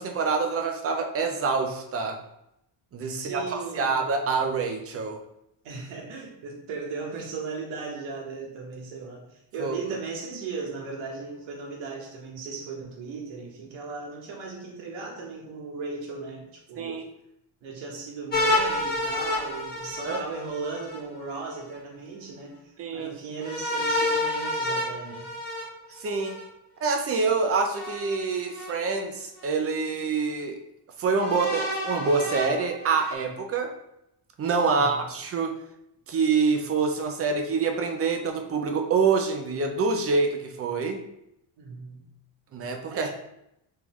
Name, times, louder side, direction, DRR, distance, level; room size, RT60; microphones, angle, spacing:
voice 1, 0.0-2.2 2.9-5.2 9.6-9.7 16.8-17.1 20.0-20.2 22.8-23.1 25.9-26.4 26.8-30.6 31.0-33.8 34.4-35.6 36.1-41.0 42.5-43.1, right 4 dB, 35° right, 4 dB, 0.4 m, -26 dB
voice 2, 3.1-4.0 5.6-17.0 17.6-25.3 34.7-35.1 41.6-42.0 42.9-43.1, right 4 dB, 90° right, -1 dB, 1.1 m, -37 dB
sound 1, 18.3-21.0 23.4-26.4 27.7-28.7 29.4-29.5 31.2-33.1, left 1 dB, 20° left, 0.9 m, -29 dB
3.5 x 3.4 x 3.0 m, 0.81 s
cardioid pair, 170°, 46 cm